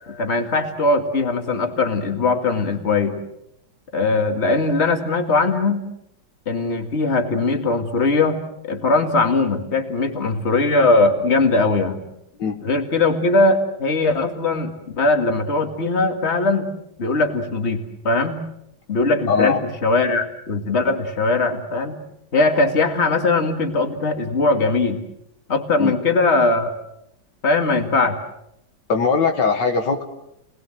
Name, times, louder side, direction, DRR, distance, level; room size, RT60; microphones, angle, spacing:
voice 1, 0.0-3.2 3.9-5.8 6.5-12.0 12.6-16.7 17.0-18.4 18.9-19.6 19.8-22.0 22.3-25.0 25.5-26.7 27.4-28.2, left 3 dB, 35° left, 6 dB, 2.4 m, -20 dB
voice 2, 19.3-19.6 25.8-25.9 28.9-30.0, left 5 dB, 70° left, 5 dB, 2.1 m, -20 dB
29.5 x 20.0 x 7.7 m, 0.80 s
omnidirectional pair, 2.0 m